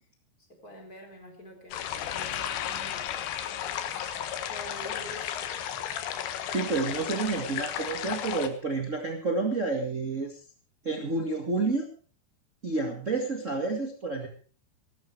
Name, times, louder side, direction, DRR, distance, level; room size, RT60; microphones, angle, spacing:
voice 1, 0.6-3.1 4.5-5.3, left 1 dB, 20° left, 2 dB, 4.2 m, -45 dB
sound 1, 1.7-8.5, left 10 dB, 85° left, 3.7 m, -34 dB
sound 2, 1.8-5.8, left 12 dB, 70° left, 2.4 m, -40 dB
voice 2, 6.4-10.4 10.8-11.8 12.6-14.3, right 3 dB, 45° right, 2 dB, 0.9 m, -29 dB
17.5 x 13.5 x 4.8 m, 0.41 s
omnidirectional pair, 4.9 m